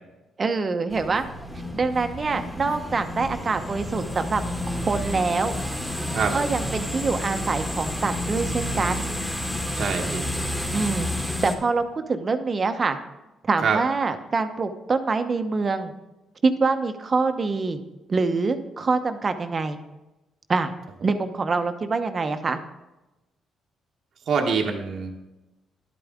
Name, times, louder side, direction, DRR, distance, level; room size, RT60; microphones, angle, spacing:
voice 1, 0.4-1.3 1.7-5.5 6.3-9.1 10.7-13.0 13.4-15.9 16.4-17.8 18.1-19.8 20.5-20.7 21.0-22.6, right 4 dB, 35° right, 8 dB, 0.9 m, -25 dB
sound 1, 0.9-11.6, left 1 dB, 10° left, 1.9 m, -30 dB
voice 2, 9.7-10.3 13.6-13.8 24.3-25.1, right 5 dB, 60° right, 2 dB, 1.1 m, -24 dB
11.0 x 8.9 x 3.6 m, 1.0 s
cardioid pair, 90°, 0 cm